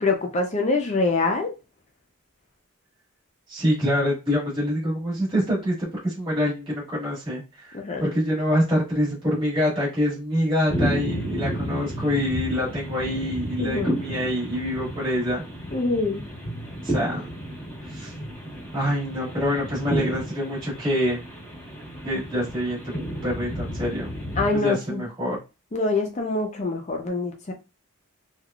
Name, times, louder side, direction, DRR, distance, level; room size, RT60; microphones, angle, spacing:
voice 1, 0.0-1.5 7.7-8.0 13.6-13.9 15.7-16.2 24.4-25.0 25.7-27.5, left 3 dB, 30° left, 0.4 m, -24 dB
voice 2, 3.5-15.4 16.8-17.3 17.9-18.1 18.7-21.2 22.0-22.9 23.2-24.1 24.5-25.4, equal, 25° right, 1.5 m, -25 dB
sound 1, 10.7-24.6, equal, 10° left, 1.2 m, -32 dB
3.3 x 2.3 x 2.3 m
head